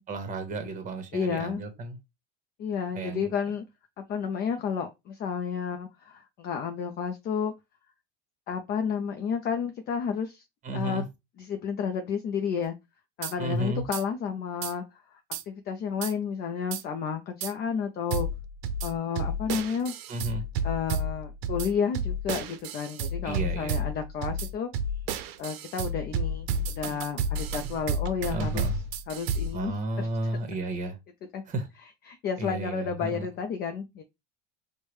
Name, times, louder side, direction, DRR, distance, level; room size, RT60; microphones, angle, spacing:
voice 1, 0.1-2.0 2.9-3.3 10.6-11.0 13.4-13.8 20.1-20.4 23.2-23.8 28.3-28.7 29.5-31.0 31.5-31.7 32.4-33.3, right 2 dB, 25° right, 1.0 m, -32 dB
voice 2, 1.1-1.6 2.6-3.6 4.0-7.5 8.5-10.4 10.7-11.0 11.4-12.8 13.2-15.2 15.5-18.3 18.8-19.9 20.6-24.7 25.4-28.7 29.1-30.1 31.3-31.4 32.1-34.0, left 6 dB, 35° left, 0.4 m, -31 dB
sound 1, 13.2-13.3 13.9-14.0 14.6-14.7 15.3-15.4 16.0-16.1 16.7-16.8 17.4-17.5 18.1-29.7, right 2 dB, 85° right, 0.6 m, -31 dB
4.6 x 2.2 x 3.1 m
cardioid pair, 145°, 29 cm